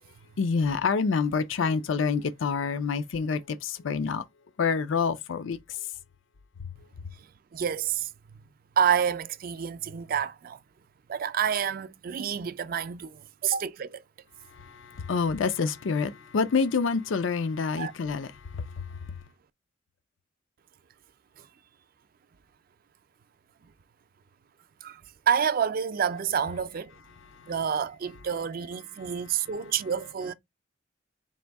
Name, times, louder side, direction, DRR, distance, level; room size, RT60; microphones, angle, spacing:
voice 1, 0.4-4.2 4.6-5.9 6.6-6.7 14.5-19.2 27.3-27.5 29.0-29.1, left 5 dB, 85° left, 0.5 m, -28 dB
voice 2, 7.5-8.4 8.8-10.6 11.1-14.0 17.8-17.9 21.4-21.5 24.8-26.9 27.5-30.3, right 8 dB, 50° right, 0.4 m, -28 dB
4.2 x 2.6 x 3.4 m
head